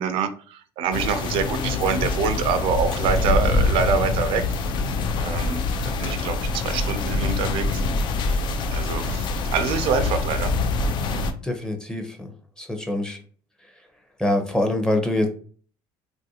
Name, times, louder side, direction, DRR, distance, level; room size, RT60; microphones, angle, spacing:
voice 1, 0.0-4.6 5.2-7.8 8.3-8.4 8.7-10.5, right 6 dB, 70° right, 10 dB, 0.4 m, -26 dB
sound 1, 0.9-11.3, left 3 dB, 50° left, 0.4 m, -25 dB
voice 2, 11.4-12.3 12.6-13.2 14.2-15.3, left 1 dB, 5° left, 4 dB, 0.6 m, -24 dB
3.0 x 2.5 x 2.7 m, 0.43 s
supercardioid pair, 105°, 10 cm